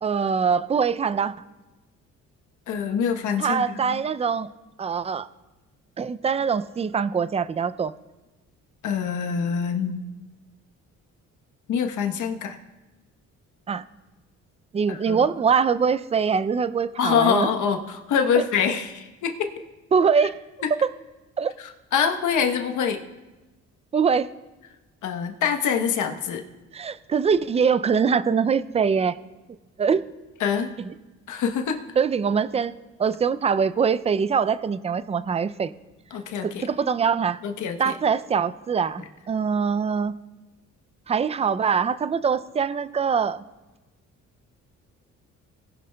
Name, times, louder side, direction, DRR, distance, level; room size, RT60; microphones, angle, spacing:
voice 1, 0.0-1.3 3.4-4.5 4.8-5.3 6.0-7.9 13.7-13.8 14.7-17.5 18.4-18.5 19.9-20.3 21.4-21.5 23.9-24.3 26.7-29.2 29.8-30.0 32.0-32.7 33.0-35.7 36.4-37.4 37.8-40.1 41.1-43.4, right 6 dB, 20° right, 14 dB, 0.4 m, -23 dB
voice 2, 2.7-4.0 8.8-10.0 11.7-12.6 14.9-15.2 17.0-19.5 21.9-23.0 25.0-26.4 30.4-30.7 31.3-31.8 36.1-36.7 37.4-37.9, left 7 dB, 75° left, 4 dB, 1.1 m, -25 dB
19.0 x 11.5 x 2.3 m, 1.1 s
cardioid pair, 90°, 30 cm